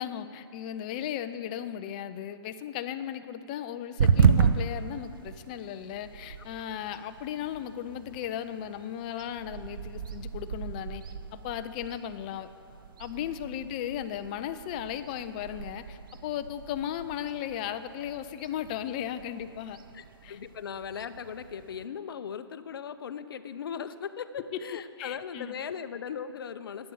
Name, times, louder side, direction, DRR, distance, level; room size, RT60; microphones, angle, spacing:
voice 1, 0.0-11.0 11.3-12.5 13.0-19.8 20.2-20.4 25.0-25.5, left 10 dB, 20° left, 10 dB, 0.3 m, -36 dB
sound 1, 4.0-21.8, right 6 dB, 50° right, 0.7 m, -33 dB
voice 2, 19.9-26.9, left 7 dB, 55° left, 11 dB, 0.7 m, -38 dB
11.0 x 8.3 x 8.5 m, 2.4 s
hypercardioid pair, 160°, 14 cm